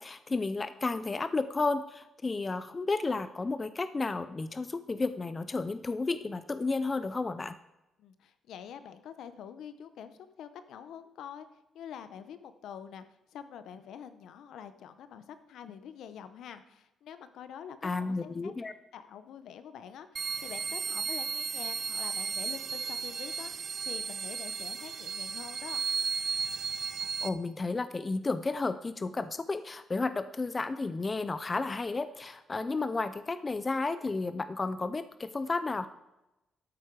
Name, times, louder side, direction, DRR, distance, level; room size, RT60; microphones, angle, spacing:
voice 1, 0.0-7.6 17.8-18.7 27.0-35.9, left 3 dB, 20° left, 12 dB, 0.4 m, -32 dB
voice 2, 8.0-11.5 11.7-13.0 13.3-18.5 18.9-25.8, left 8 dB, 75° left, 11 dB, 0.9 m, -46 dB
sound 1, 20.2-27.3, right 6 dB, 40° right, 0.7 m, -34 dB
12.5 x 8.8 x 4.7 m, 0.94 s
cardioid pair, 150°, 0 cm